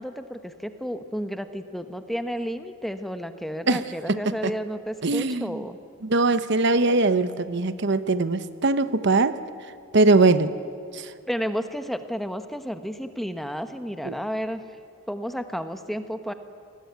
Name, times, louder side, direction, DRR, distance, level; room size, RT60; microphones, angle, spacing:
voice 1, 0.0-5.8 11.3-14.6 15.1-16.3, equal, ahead, 9 dB, 1.2 m, -32 dB
voice 2, 5.0-5.6 6.1-9.4 9.9-10.5 10.9-11.1 14.0-14.1, right 3 dB, 60° right, 13 dB, 1.0 m, -21 dB
27.5 x 20.0 x 9.5 m, 2.5 s
head